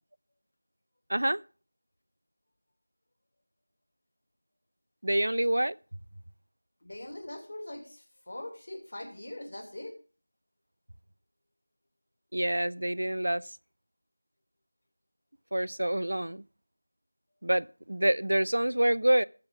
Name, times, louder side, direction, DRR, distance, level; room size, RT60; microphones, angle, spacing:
voice 1, 1.1-1.4 5.0-5.8 12.3-13.4 15.5-16.4 17.4-19.2, right 1 dB, 80° right, 0.4 m, -27 dB
voice 2, 6.8-10.0, left 1 dB, 55° left, 2.7 m, -42 dB
13.5 x 7.1 x 5.2 m
figure-of-eight pair, 175°, 0 cm